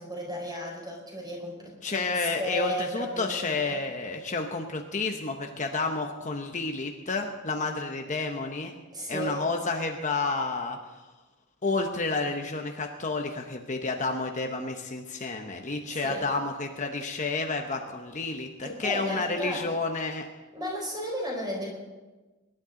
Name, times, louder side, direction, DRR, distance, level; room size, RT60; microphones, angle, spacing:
voice 1, 0.0-3.8 8.9-9.4 15.9-16.3 18.6-19.7 20.5-21.7, equal, 20° right, -2 dB, 4.6 m, -34 dB
voice 2, 1.8-8.8 9.1-10.8 11.6-20.3, left 3 dB, 35° left, 3 dB, 1.0 m, -30 dB
23.5 x 11.5 x 3.9 m, 1.2 s
head